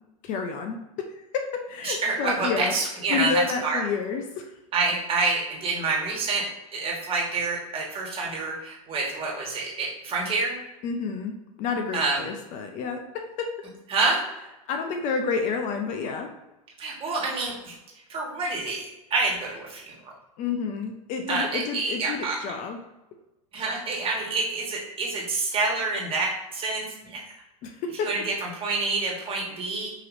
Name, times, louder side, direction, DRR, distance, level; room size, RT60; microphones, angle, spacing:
voice 1, 0.2-0.8 1.1-2.7 3.1-4.5 10.8-13.5 14.7-16.3 20.4-22.8 27.6-28.1, left 5 dB, 40° left, 5 dB, 0.5 m, -30 dB
voice 2, 1.8-3.8 4.7-10.6 11.9-12.2 13.9-14.2 16.8-17.8 18.1-19.9 21.3-22.4 23.5-27.3 28.0-29.9, right 3 dB, 30° right, -3 dB, 1.4 m, -27 dB
4.8 x 3.0 x 2.6 m, 0.97 s
hypercardioid pair, 100°, 19 cm